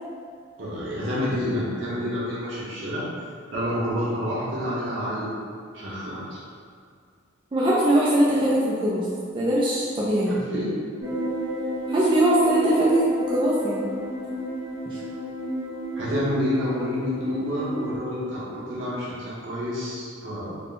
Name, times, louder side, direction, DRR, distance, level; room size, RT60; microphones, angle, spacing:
voice 1, 0.6-3.0 3.5-5.4 5.7-6.4 10.3-10.7 16.0-20.6, equal, 70° right, -8 dB, 1.2 m, -29 dB
voice 2, 7.5-9.1 9.3-10.4 11.9-13.9, right 1 dB, 25° right, -7 dB, 0.4 m, -21 dB
sound 1, 11.0-18.0, equal, 90° right, 1.4 m, -31 dB
3.6 x 2.2 x 3.9 m, 2.2 s
head